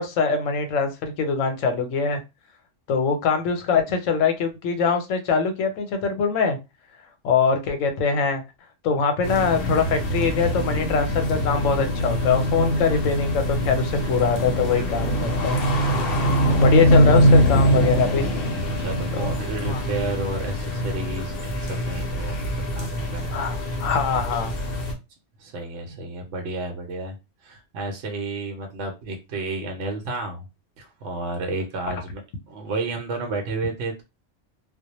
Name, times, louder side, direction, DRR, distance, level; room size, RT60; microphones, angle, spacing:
voice 1, 0.0-2.2 2.9-6.6 7.2-8.4 8.8-15.6 16.5-18.3 19.1-19.8 23.3-24.5, left 5 dB, 85° left, 1.0 m, -23 dB
sound 1, 9.2-24.9, equal, 55° left, 0.8 m, -23 dB
voice 2, 18.8-23.3 25.4-27.2 27.4-30.5 30.8-32.2 32.5-34.0, right 2 dB, 70° right, 0.9 m, -31 dB
2.2 x 2.1 x 2.8 m
omnidirectional pair, 1.3 m